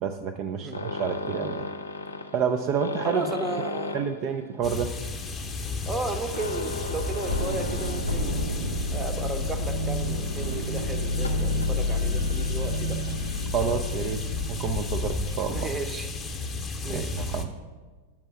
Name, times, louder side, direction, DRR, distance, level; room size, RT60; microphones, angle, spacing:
voice 1, 0.0-1.7 2.3-3.3 3.9-4.9 13.5-14.2 14.5-15.7 16.9-17.5, right 7 dB, 40° right, 6 dB, 0.4 m, -29 dB
sound 1, 0.7-8.5 8.8-9.1 9.6-9.7 10.0-10.1 11.1-11.8 13.0-13.2 13.6-14.0 14.8-14.9 15.1-15.2 15.4-15.5, left 3 dB, 75° left, 0.6 m, -35 dB
voice 2, 3.0-4.0 5.9-8.4 8.9-13.2 15.5-16.1 16.8-17.3, right 3 dB, 20° right, 7 dB, 0.8 m, -34 dB
sound 2, 4.6-17.5, left 3 dB, 20° left, 0.8 m, -34 dB
sound 3, 7.3-16.1, left 1 dB, 80° right, 0.7 m, -30 dB
7.1 x 5.3 x 6.2 m, 1.4 s
figure-of-eight pair, 90°, 0 cm